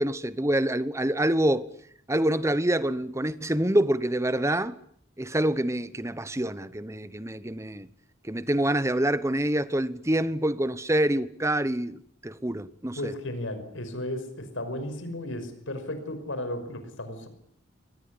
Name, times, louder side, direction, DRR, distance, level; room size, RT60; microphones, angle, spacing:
voice 1, 0.0-1.7 2.1-4.7 5.2-7.9 8.3-13.1, right 1 dB, 15° right, 1.0 m, -26 dB
voice 2, 13.0-17.3, left 1 dB, 80° left, 5.6 m, -34 dB
24.0 x 19.0 x 9.8 m
head